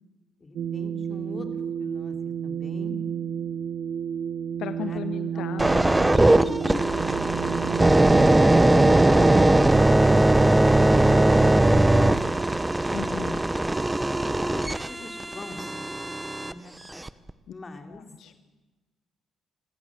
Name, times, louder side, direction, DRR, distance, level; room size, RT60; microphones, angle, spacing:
voice 1, 0.4-2.2 2.4-2.9 4.8-5.0 5.3-5.7 6.4-7.1 10.5-12.4 14.2-16.0 16.4-17.1 17.5-18.0, left 3 dB, 30° left, 5 dB, 3.2 m, -41 dB
sound 1, 0.5-9.4, right 8 dB, 65° right, 0.7 m, -31 dB
voice 2, 4.6-5.8 12.9-13.5 17.9-18.3, left 10 dB, 75° left, 11 dB, 0.8 m, -36 dB
sound 2, 5.6-16.5 17.1-17.3, right 1 dB, 15° right, 0.9 m, -20 dB
27.5 x 14.0 x 7.4 m, 1.2 s
cardioid pair, 85°, 0 cm